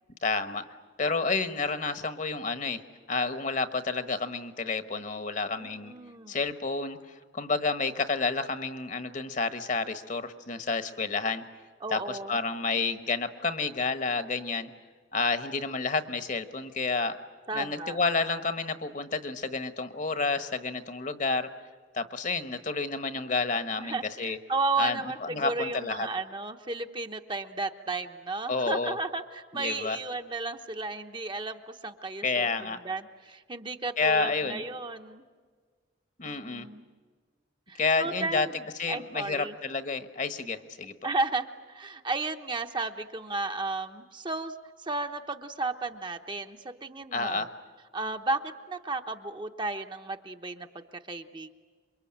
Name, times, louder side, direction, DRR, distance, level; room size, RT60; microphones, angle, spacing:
voice 1, 0.2-0.6 1.0-2.8 3.1-5.9 6.3-7.0 7.3-11.4 11.9-14.7 15.1-17.2 17.5-21.5 21.9-24.4 24.8-26.1 28.5-29.0 29.5-30.0 32.2-32.8 34.0-34.6 36.2-36.7 37.8-38.5 38.8-40.9 47.1-47.5, left 4 dB, 40° left, 10 dB, 1.2 m, -30 dB
voice 2, 5.6-6.4 11.8-12.4 17.5-18.0 23.8-32.5 32.8-35.2 36.2-36.9 37.7-38.5 38.9-39.6 41.0-44.5 44.8-47.5 47.9-51.5, right 3 dB, 25° right, 6 dB, 0.9 m, -34 dB
27.5 x 23.5 x 8.8 m, 1.5 s
head